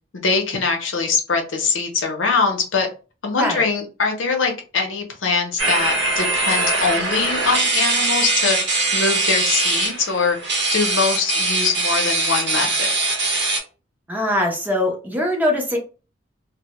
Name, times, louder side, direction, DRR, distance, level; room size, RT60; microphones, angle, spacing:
voice 1, 0.1-2.9 3.2-8.6 8.9-10.4 10.7-12.9, left 4 dB, 75° left, 0.6 m, -22 dB
sound 1, 5.6-13.6, right 3 dB, 60° right, 0.7 m, -21 dB
voice 2, 14.1-15.8, left 1 dB, 10° right, 0.5 m, -22 dB
2.1 x 2.0 x 2.8 m
head